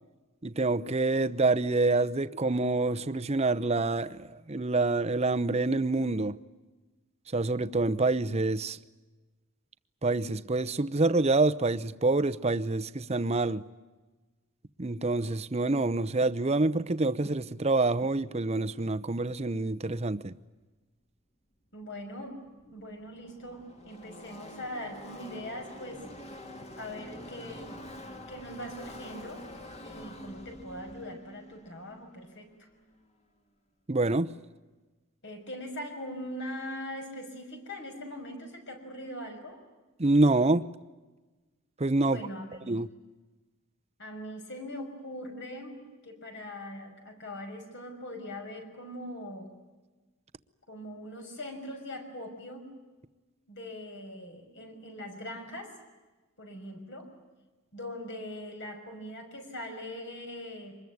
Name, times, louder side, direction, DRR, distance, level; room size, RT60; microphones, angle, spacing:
voice 1, 0.4-4.2 4.5-6.4 7.3-8.8 10.0-13.6 14.8-20.3 33.9-34.3 40.0-40.6 41.8-42.2 42.7-42.9, right 2 dB, 30° right, 0.8 m, -26 dB
voice 2, 21.7-26.0 26.8-27.8 28.3-29.4 29.8-32.7 35.2-39.6 42.0-42.7 44.0-49.5 50.7-52.7 53.5-55.7 56.4-57.1 57.7-60.8, left 1 dB, 60° left, 5.8 m, -41 dB
Car passing by / Race car auto racing, 22.5-33.1, left 1 dB, 30° left, 2.5 m, -46 dB
25.0 x 21.0 x 9.5 m
head